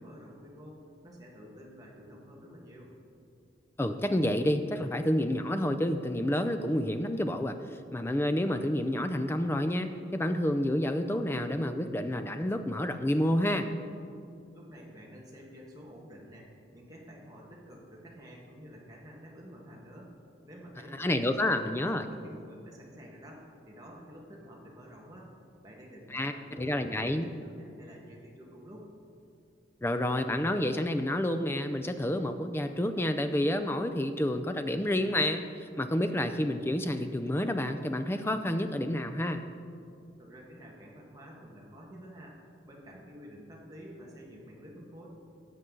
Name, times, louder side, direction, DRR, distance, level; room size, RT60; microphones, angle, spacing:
voice 1, 0.0-2.9 14.5-20.2 20.4-25.3 25.6-28.9 40.2-45.1, equal, 20° right, -3 dB, 1.6 m, -50 dB
voice 2, 3.8-7.6 7.9-13.7 21.0-22.0 26.1-27.3 29.8-39.4, left 1 dB, 10° left, 8 dB, 0.4 m, -29 dB
13.5 x 7.7 x 3.8 m, 2.4 s
head